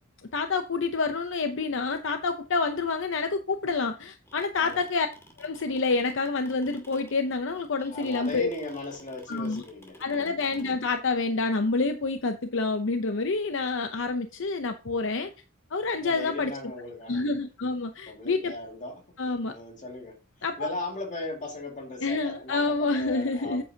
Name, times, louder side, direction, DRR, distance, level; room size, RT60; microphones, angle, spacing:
voice 1, 0.3-5.1 5.4-8.5 9.3-9.6 10.0-15.3 15.7-16.5 17.1-18.5 19.2-19.5 20.4-20.7 22.0-23.6, left 3 dB, 65° left, 0.7 m, -28 dB
sound 1, 4.0-10.8, left 1 dB, 15° left, 2.2 m, -52 dB
voice 2, 7.9-10.3 15.9-17.2 18.1-19.0 19.5-20.2 20.6-23.6, left 2 dB, 40° left, 2.3 m, -37 dB
9.4 x 8.4 x 2.8 m
head